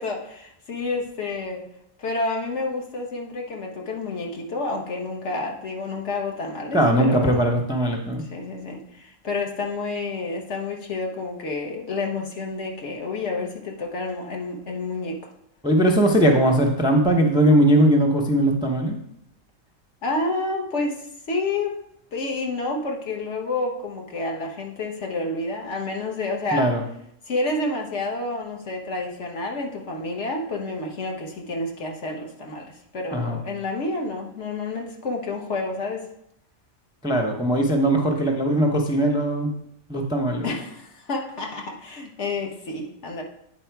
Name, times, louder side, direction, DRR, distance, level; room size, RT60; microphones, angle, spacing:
voice 1, 0.0-1.6 2.0-7.5 8.3-15.2 20.0-21.0 21.3-21.8 22.1-26.7 27.3-36.0 40.4-43.2, left 2 dB, 60° left, 1 dB, 1.3 m, -29 dB
voice 2, 6.7-8.2 15.6-19.0 26.5-26.8 33.1-33.4 37.0-39.5 39.9-40.5, right 1 dB, 5° right, 2 dB, 0.5 m, -20 dB
9.0 x 4.2 x 4.6 m, 0.75 s
omnidirectional pair, 1.4 m